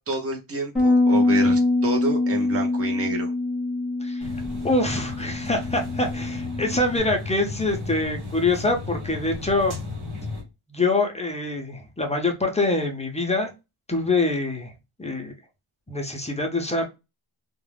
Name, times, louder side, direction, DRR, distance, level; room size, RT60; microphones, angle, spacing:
voice 1, 0.1-3.3, right 2 dB, 30° right, 1 dB, 0.6 m, -29 dB
Bass guitar, 0.8-7.0, left 2 dB, ahead, 0.8 m, -24 dB
sound 1, 4.2-10.4, left 3 dB, 80° right, 1.4 m, -34 dB
voice 2, 4.6-9.7 10.7-13.5 13.9-14.7 15.0-15.3 15.9-16.8, left 2 dB, 15° left, 3 dB, 0.3 m, -25 dB
2.3 x 2.0 x 3.1 m, 0.26 s
wide cardioid pair, 170°, 48 cm